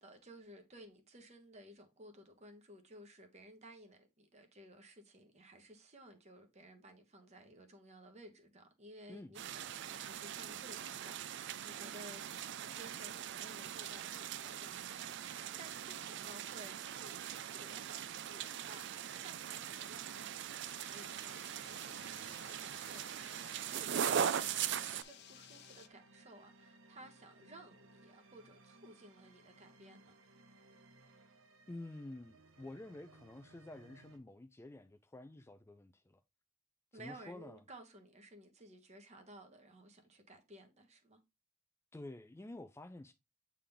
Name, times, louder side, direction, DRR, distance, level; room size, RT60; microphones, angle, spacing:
voice 1, 0.0-12.2 12.7-30.2 36.9-41.2, right 1 dB, 35° right, 1.2 m, -57 dB
sound 1, 9.3-25.0, right 9 dB, 60° right, 0.4 m, -41 dB
sound 2, 20.6-25.9, left 10 dB, 55° left, 0.6 m, -58 dB
sound 3, 21.7-34.2, right 2 dB, 80° right, 1.0 m, -63 dB
voice 2, 31.7-36.2 36.9-37.6 41.9-43.1, left 2 dB, 15° left, 0.3 m, -50 dB
8.4 x 3.7 x 3.5 m
head